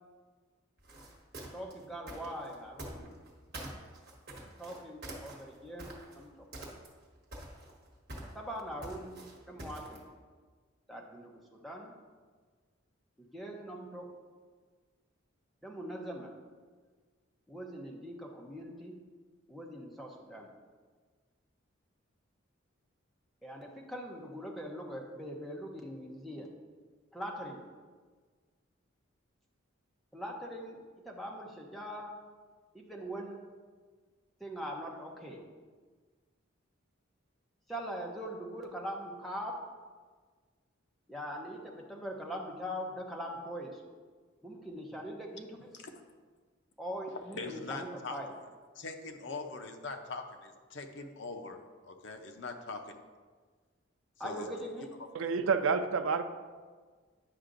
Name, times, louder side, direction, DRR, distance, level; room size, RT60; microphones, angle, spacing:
sound 1, 0.8-3.3 3.5-6.2 6.5-7.1 7.3-10.1, right 1 dB, 50° right, 1.5 m, -45 dB
voice 1, 1.4-3.2 4.6-6.3 8.3-10.0 10.9-11.9 13.3-14.1 15.6-16.3 17.5-18.9 19.5-20.5 23.4-26.5 27.1-27.7 30.1-30.8 31.0-32.1 32.7-33.4 34.4-35.4 37.7-39.6 41.1-43.8 44.4-45.7 46.8-48.3 54.2-54.9, equal, ahead, -2 dB, 0.8 m, -42 dB
voice 2, 47.4-48.2 48.8-51.6 51.8-53.0 54.2-54.5, left 3 dB, 60° left, 5 dB, 0.6 m, -42 dB
voice 3, 55.1-56.2, right 5 dB, 80° right, 9 dB, 0.4 m, -28 dB
9.8 x 5.8 x 2.6 m, 1.5 s
head